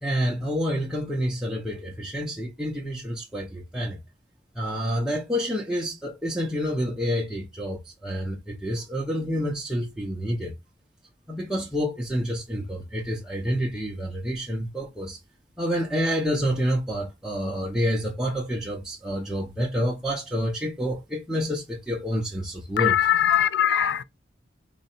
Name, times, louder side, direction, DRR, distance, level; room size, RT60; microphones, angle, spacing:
voice 1, 0.0-4.0 4.6-10.5 11.3-15.2 15.6-23.0, equal, 5° right, 0.6 m, -28 dB
voice 2, 22.8-24.0, left 10 dB, 70° left, 0.3 m, -21 dB
3.7 x 2.2 x 4.1 m
head